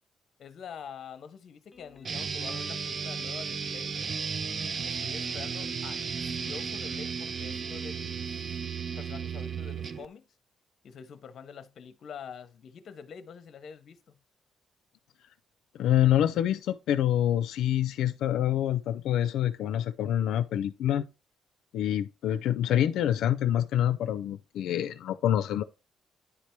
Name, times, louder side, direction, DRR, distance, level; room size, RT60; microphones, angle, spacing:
voice 1, 0.4-4.0 4.8-8.6 9.0-10.2 10.8-14.2, left 7 dB, 50° left, 0.7 m, -46 dB
Guitar, 1.7-8.7, left 3 dB, 15° left, 1.0 m, -54 dB
sound 1, 2.0-10.1, right 6 dB, 35° right, 0.4 m, -34 dB
voice 2, 15.7-21.0 21.7-25.6, left 11 dB, 90° left, 0.4 m, -26 dB
9.8 x 3.3 x 4.4 m
cardioid pair, 160°, 0 cm